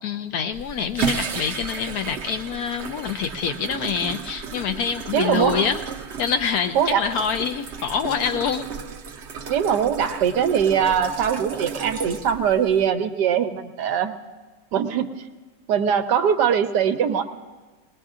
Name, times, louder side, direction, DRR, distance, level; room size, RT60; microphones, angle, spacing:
voice 1, 0.0-5.8 6.2-8.7, left 7 dB, 70° left, 8 dB, 1.0 m, -26 dB
sound 1, 0.5-12.9, right 6 dB, 50° right, 0.8 m, -33 dB
voice 2, 5.1-5.7 6.7-7.0 9.5-14.2 14.7-15.2 15.7-17.2, right 8 dB, 80° right, 7 dB, 1.4 m, -21 dB
21.5 x 19.5 x 2.5 m, 1.3 s
omnidirectional pair, 1.8 m